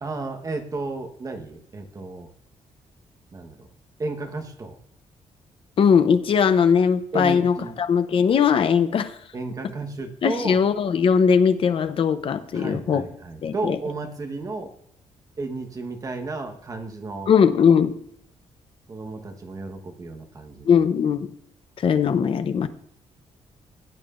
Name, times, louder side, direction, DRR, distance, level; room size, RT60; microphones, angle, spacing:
voice 1, 0.0-2.3 3.3-3.7 4.0-4.8 7.1-7.8 9.3-10.6 12.5-14.7 15.4-17.3 18.9-20.8, right 3 dB, 30° right, 5 dB, 1.2 m, -33 dB
voice 2, 5.8-9.1 10.2-13.1 13.4-13.8 17.3-17.9 20.7-21.3 21.8-22.7, left 6 dB, 45° left, 11 dB, 0.7 m, -20 dB
16.5 x 8.9 x 2.5 m, 0.73 s
wide cardioid pair, 165°, 12 cm